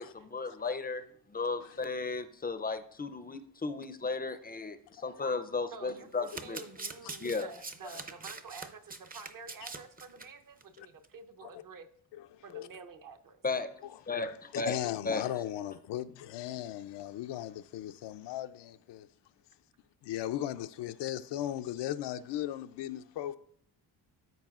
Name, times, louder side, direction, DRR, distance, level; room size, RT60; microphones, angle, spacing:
voice 1, 0.0-6.6 7.2-7.5 13.4-13.8 14.1-14.8 15.1-15.2, left 4 dB, 25° left, 0.4 m, -35 dB
voice 2, 5.7-11.9 12.4-13.4, right 4 dB, 50° right, 0.8 m, -49 dB
Domestic sounds home sounds, 6.1-10.3 10.6-10.8 11.0-11.1, right 3 dB, 20° right, 0.6 m, -44 dB
voice 3, 14.1-19.1 20.0-23.4, left 12 dB, 80° left, 0.5 m, -37 dB
13.0 x 4.6 x 2.4 m
cardioid pair, 105°, 41 cm